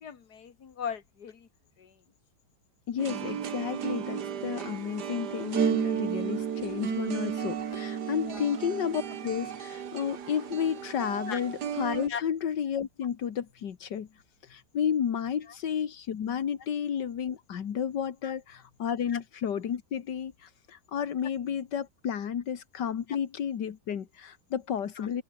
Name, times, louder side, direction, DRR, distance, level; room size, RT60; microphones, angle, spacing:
voice 1, 0.0-1.5 1.8-1.9 8.3-8.5 11.3-11.4 12.1-12.2 18.2-18.3 19.1-19.2 25.0-25.1, left 7 dB, 65° left, 2.4 m, -38 dB
voice 2, 2.9-14.1 14.4-25.2, left 8 dB, 90° left, 2.1 m, -32 dB
sound 1, 3.0-12.1, right 8 dB, 70° right, 1.9 m, -33 dB
open air
omnidirectional pair, 1.8 m